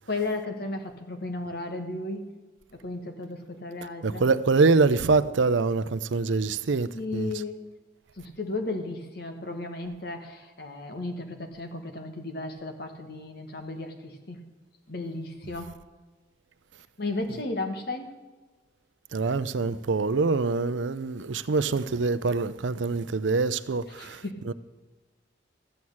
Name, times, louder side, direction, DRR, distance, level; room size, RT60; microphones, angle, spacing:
voice 1, 0.1-2.3 2.7-4.2 6.9-7.6 8.2-14.4 14.9-15.7 17.0-18.1 24.0-24.5, left 2 dB, 55° left, 1.5 m, -34 dB
voice 2, 4.0-7.3 19.1-24.5, right 3 dB, 80° right, 0.6 m, -25 dB
14.0 x 6.3 x 8.7 m
head